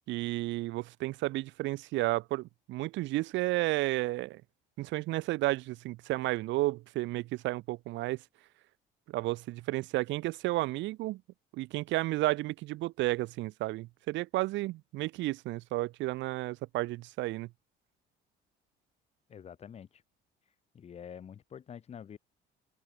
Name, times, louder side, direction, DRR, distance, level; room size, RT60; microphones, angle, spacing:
voice 1, 0.1-4.4 4.8-8.2 9.1-11.2 11.5-17.5, right 18 dB, 80° right, 3.3 m, -32 dB
voice 2, 19.3-20.0 20.7-22.2, left 8 dB, 35° left, 7.9 m, -47 dB
open air
cardioid pair, 165°, 19 cm